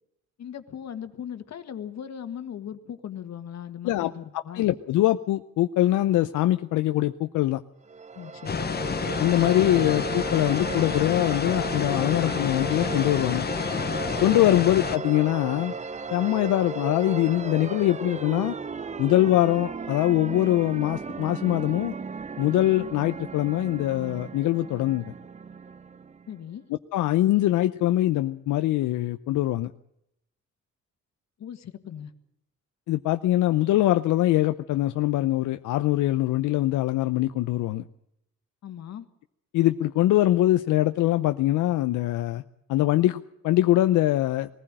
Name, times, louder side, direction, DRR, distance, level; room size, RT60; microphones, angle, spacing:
voice 1, 0.4-4.7 8.2-8.6 26.3-26.7 31.4-32.1 38.6-39.1, left 9 dB, 60° left, 9 dB, 1.8 m, -38 dB
voice 2, 4.5-7.6 9.2-13.5 14.2-15.7 16.1-18.5 19.0-21.9 22.4-25.1 26.9-29.7 32.9-37.8 39.5-42.4 42.7-44.5, left 15 dB, 85° left, 9 dB, 0.7 m, -23 dB
sound 1, 7.8-26.5, right 5 dB, 25° right, 0.7 m, -35 dB
sound 2, 8.5-15.0, left 6 dB, 35° left, 1.0 m, -29 dB
20.0 x 15.0 x 8.8 m, 0.79 s
cardioid pair, 90°, 30 cm